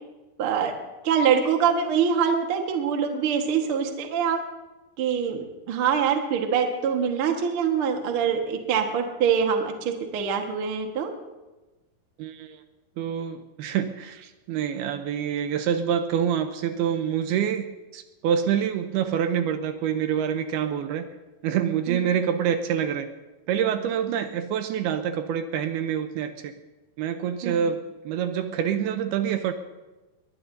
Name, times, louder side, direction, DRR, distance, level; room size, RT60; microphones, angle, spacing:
voice 1, 0.4-0.7 1.0-4.4 5.0-11.1 21.9-22.0 27.4-27.7, right 7 dB, 60° right, 3 dB, 1.4 m, -24 dB
voice 2, 12.2-12.6 13.0-21.1 21.4-23.1 23.5-26.5 27.0-29.5, right 8 dB, 80° right, 8 dB, 2.5 m, -26 dB
21.5 x 20.0 x 2.7 m, 1.1 s
omnidirectional pair, 4.8 m